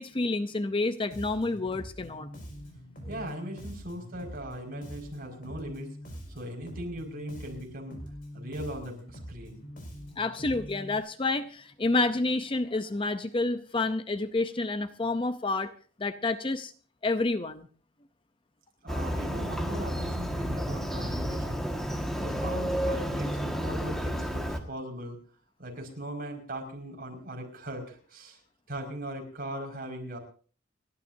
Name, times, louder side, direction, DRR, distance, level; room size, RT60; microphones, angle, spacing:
voice 1, 0.0-2.3 10.2-15.7 16.0-16.7 17.0-17.7, left 2 dB, 25° left, 11 dB, 0.6 m, -29 dB
Bass guitar, 1.1-11.0, equal, 45° left, 5.1 m, -44 dB
voice 2, 3.1-5.9 6.3-8.0 8.3-9.6 18.8-21.7 22.1-25.2 25.6-28.4 28.7-30.2, right 1 dB, 45° right, 2 dB, 5.2 m, -39 dB
Motorcycle, 18.9-24.6, equal, ahead, 1.6 m, -31 dB
30.0 x 12.0 x 2.7 m, 0.40 s
head